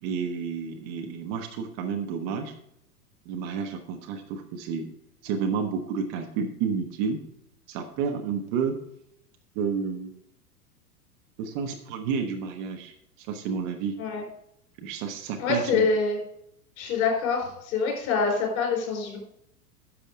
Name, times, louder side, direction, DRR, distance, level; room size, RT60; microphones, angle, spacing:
voice 1, 0.0-2.5 3.2-4.9 5.2-7.2 7.7-8.8 9.5-10.1 11.4-14.0 14.8-15.9, right 6 dB, 35° right, 4 dB, 1.2 m, -30 dB
voice 2, 15.4-16.2 16.8-19.2, left 4 dB, 45° left, 1 dB, 4.2 m, -25 dB
11.0 x 6.8 x 3.7 m, 0.76 s
figure-of-eight pair, 95°, 46 cm